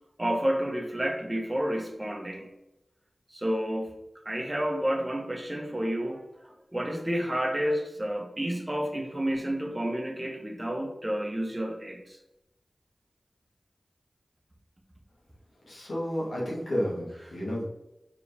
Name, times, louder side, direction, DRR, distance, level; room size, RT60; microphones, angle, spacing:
voice 1, 0.2-2.5 3.3-3.9 4.2-12.2 17.3-17.4, equal, 25° right, 3 dB, 1.3 m, -30 dB
voice 2, 15.7-17.6, equal, 85° left, -5 dB, 2.3 m, -31 dB
5.5 x 4.9 x 3.6 m, 0.90 s
cardioid pair, 45°, 0 cm